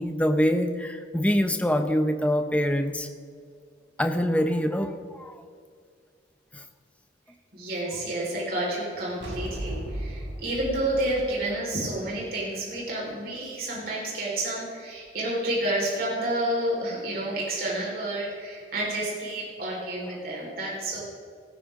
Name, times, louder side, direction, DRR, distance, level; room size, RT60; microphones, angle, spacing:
voice 1, 0.0-3.1 4.0-5.4 6.5-6.6, equal, 5° left, 6 dB, 0.9 m, -25 dB
voice 2, 7.5-21.0, right 1 dB, 55° right, -5 dB, 4.8 m, -30 dB
Explosion Impact Break gravel reverb, 9.2-12.6, right 1 dB, 75° right, 3.8 m, -36 dB
19.0 x 14.5 x 3.8 m, 2.1 s
head